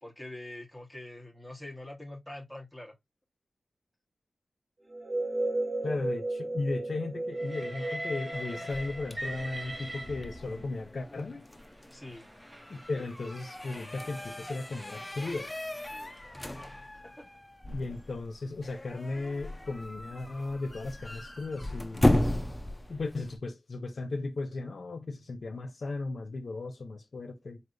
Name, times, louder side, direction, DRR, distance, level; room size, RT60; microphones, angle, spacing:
voice 1, 0.0-2.9 11.9-12.2 15.9-17.3, left 1 dB, ahead, 1.5 m, -45 dB
sound 1, 4.9-9.5, right 2 dB, 45° right, 1.1 m, -34 dB
voice 2, 5.8-11.4 12.7-15.5 17.7-22.2 22.9-27.6, left 3 dB, 65° left, 0.7 m, -36 dB
Train, 7.3-10.7 11.6-16.8, right 1 dB, 25° right, 1.3 m, -43 dB
sound 2, 8.3-23.4, left 1 dB, 15° left, 0.7 m, -35 dB
4.2 x 3.3 x 2.7 m
wide cardioid pair, 70°, 0 cm